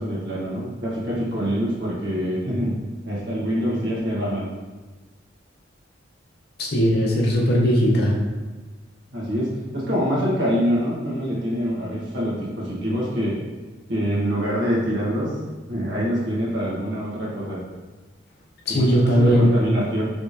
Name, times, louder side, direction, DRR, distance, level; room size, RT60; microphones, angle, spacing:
voice 1, 0.0-2.8 3.0-4.5 6.8-6.9 9.1-13.4 13.9-15.4 15.7-17.6 18.7-20.1, equal, 60° right, -6 dB, 1.4 m, -25 dB
voice 2, 6.6-8.1 18.7-19.5, equal, 55° left, -3 dB, 0.9 m, -18 dB
4.9 x 3.4 x 2.7 m, 1.2 s
head